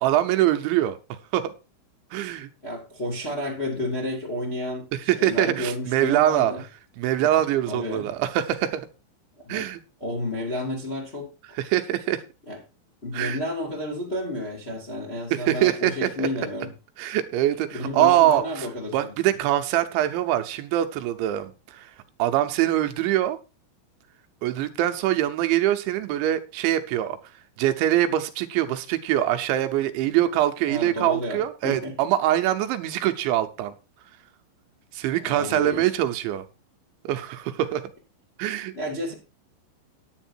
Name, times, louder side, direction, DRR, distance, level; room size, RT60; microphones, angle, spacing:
voice 1, 0.0-1.0 1.3-1.5 2.1-2.5 4.9-6.5 7.0-8.9 9.5-9.8 11.7-12.2 13.1-13.4 15.3-16.3 17.0-18.7 18.9-21.9 22.2-23.4 24.4-27.2 27.6-33.7 34.9-36.4 37.0-37.8 38.4-38.7, right 13 dB, 75° right, 3.0 m, -23 dB
voice 2, 2.6-6.6 7.7-8.1 9.4-9.6 10.0-11.6 12.5-12.6 13.0-16.7 17.7-19.1 30.7-31.9 35.3-35.9 38.7-39.1, left 1 dB, 20° left, 1.8 m, -31 dB
10.0 x 9.9 x 4.5 m
omnidirectional pair, 5.8 m